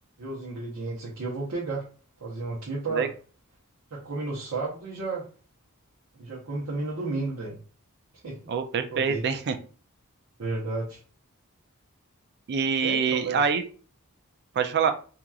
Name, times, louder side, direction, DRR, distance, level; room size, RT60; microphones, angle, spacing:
voice 1, 0.2-1.9 2.2-3.1 3.9-5.2 6.2-7.6 8.2-8.4 8.9-9.2 10.4-11.0 12.8-13.4, right 3 dB, 70° right, -6 dB, 0.8 m, -32 dB
voice 2, 8.5-9.6 12.5-13.6 14.6-14.9, right 6 dB, 50° right, 8 dB, 0.4 m, -25 dB
2.9 x 2.4 x 2.3 m, 0.39 s
head